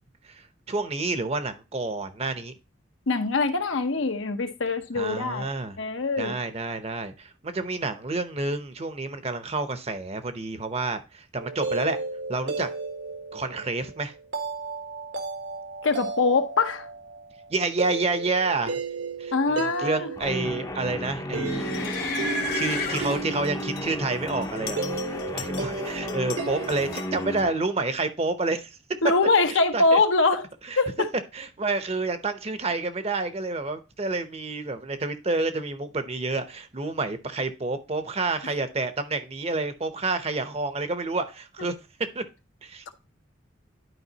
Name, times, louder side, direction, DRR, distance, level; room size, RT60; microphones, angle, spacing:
voice 1, 0.2-2.5 5.0-5.8 6.2-12.0 12.3-12.7 13.3-14.1 17.5-18.8 19.2-24.8 25.1-28.8 29.5-30.0 30.7-30.8 31.3-41.7 42.1-42.2 42.6-42.8, right 3 dB, 30° right, 0.7 m, -29 dB
voice 2, 3.1-5.5 5.8-6.4 15.8-16.9 19.3-20.1 25.2-25.3 29.0-30.5 30.8-31.1, left 3 dB, 80° left, 0.9 m, -23 dB
sound 1, 11.4-27.2, right 3 dB, 80° right, 1.4 m, -35 dB
Guitar, 20.2-27.6, left 1 dB, 20° left, 0.6 m, -34 dB
sound 2, 21.5-23.9 24.3-25.8 26.1-27.4, left 3 dB, 50° left, 1.1 m, -34 dB
11.0 x 4.8 x 2.8 m
head